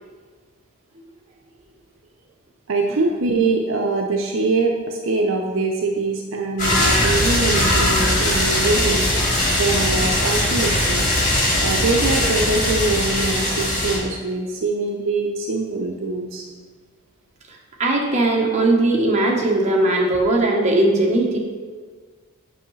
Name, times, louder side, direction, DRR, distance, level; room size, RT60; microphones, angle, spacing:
voice 1, 2.7-9.1 9.5-11.0 11.6-16.5, right 3 dB, 65° right, 1 dB, 0.6 m, -23 dB
sound 1, 6.6-14.0, left 1 dB, 35° left, 1.9 m, -20 dB
voice 2, 17.8-21.4, right 2 dB, 35° right, -1 dB, 0.9 m, -18 dB
8.1 x 5.4 x 3.2 m, 1.5 s
head